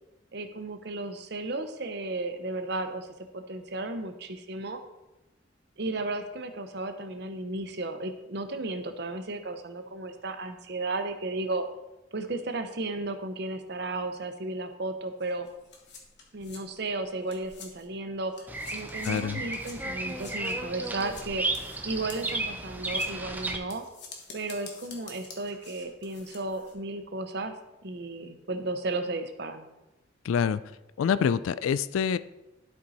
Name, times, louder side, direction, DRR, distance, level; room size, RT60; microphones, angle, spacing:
voice 1, 0.3-3.1 3.3-4.8 5.8-11.7 12.1-15.5 16.3-21.5 21.8-23.8 24.3-27.6 27.8-29.7, right 2 dB, 55° right, 8 dB, 0.7 m, -34 dB
sound 1, 15.2-18.0 18.3-26.7, left 4 dB, 55° left, 1.3 m, -48 dB
Bird vocalization bird call bird song, 18.5-23.6, right 2 dB, 10° right, 0.5 m, -33 dB
voice 2, 19.0-19.4 30.2-30.6 31.0-32.2, left 7 dB, 90° left, 15 dB, 0.3 m, -26 dB
11.5 x 4.5 x 4.1 m, 0.98 s
head